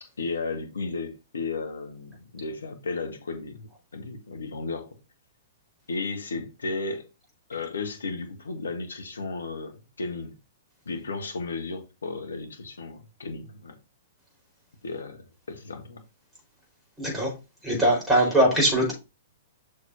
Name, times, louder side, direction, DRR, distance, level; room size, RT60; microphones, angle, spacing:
voice 1, 0.0-5.0 5.9-7.1 7.5-10.4 10.8-13.8 14.8-16.0, left 3 dB, 75° left, 1.5 m, -34 dB
voice 2, 17.0-17.3 17.6-18.9, right 1 dB, 5° right, 4.7 m, -21 dB
6.9 x 6.5 x 2.8 m
figure-of-eight pair, 110°, 0 cm